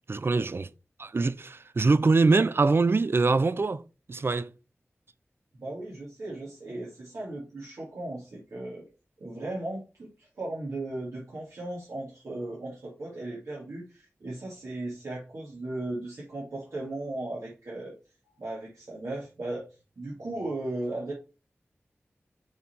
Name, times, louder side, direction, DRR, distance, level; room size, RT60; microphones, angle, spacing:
voice 1, 0.1-0.7 1.0-3.8 4.1-4.5, right 3 dB, 55° right, 0.5 m, -23 dB
voice 2, 5.5-8.9 9.2-18.0 18.2-19.6 20.0-21.1, right 2 dB, 85° right, 1.9 m, -36 dB
6.1 x 3.8 x 4.3 m
wide cardioid pair, 55°, 5 cm